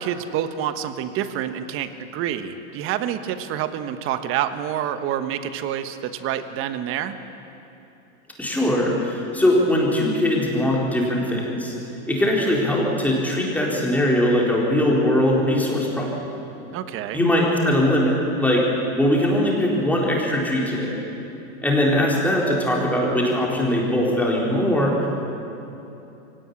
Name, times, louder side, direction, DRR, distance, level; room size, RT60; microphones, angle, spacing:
voice 1, 0.0-7.2 16.7-17.2, right 10 dB, 30° right, 10 dB, 1.3 m, -27 dB
voice 2, 8.4-11.7 12.1-16.3 17.1-21.0 21.6-25.1, left 1 dB, 5° left, -3 dB, 4.2 m, -21 dB
23.5 x 18.0 x 9.9 m, 2.9 s
supercardioid pair, 150°, 41 cm